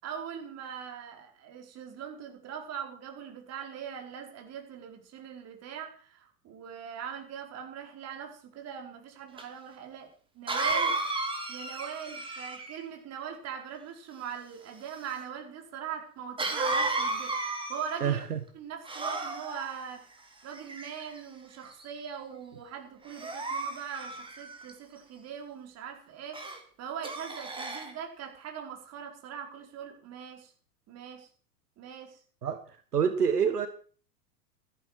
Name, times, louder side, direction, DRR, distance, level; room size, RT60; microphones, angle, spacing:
voice 1, 0.0-11.0 11.5-18.2 18.5-20.0 20.4-26.4 26.8-30.5 30.9-31.3 31.8-32.2, right 8 dB, 35° right, 4.6 m, -41 dB
Cough, 9.4-9.5 10.5-12.8 16.4-18.1 18.8-19.7 20.5-21.2 21.8-22.1 23.1-24.7 26.3-26.6 27.0-27.9, right 3 dB, 10° right, 2.8 m, -33 dB
voice 2, 18.0-18.4 32.4-33.7, right 7 dB, 80° right, 1.4 m, -27 dB
16.0 x 13.5 x 4.8 m
figure-of-eight pair, 95°, 46 cm